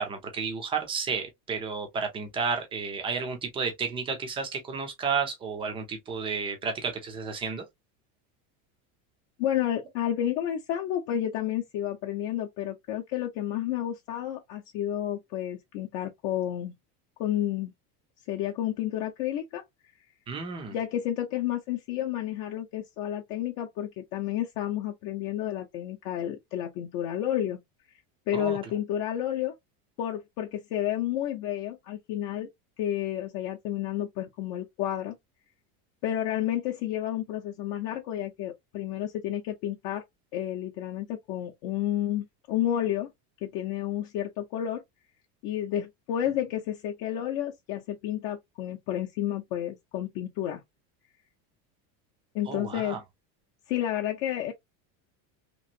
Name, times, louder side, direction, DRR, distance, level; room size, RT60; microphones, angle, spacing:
voice 1, 0.0-7.6 20.3-20.8 28.3-28.6 52.5-53.0, right 5 dB, 15° right, 0.4 m, -32 dB
voice 2, 9.4-16.7 17.2-17.7 18.3-19.6 20.7-27.6 28.3-29.5 30.0-32.5 32.8-35.2 36.0-40.0 40.3-43.1 43.4-44.8 45.4-50.6 52.3-53.0 53.7-54.5, left 11 dB, 50° left, 0.6 m, -31 dB
3.0 x 2.5 x 2.5 m
cardioid pair, 155°, 46 cm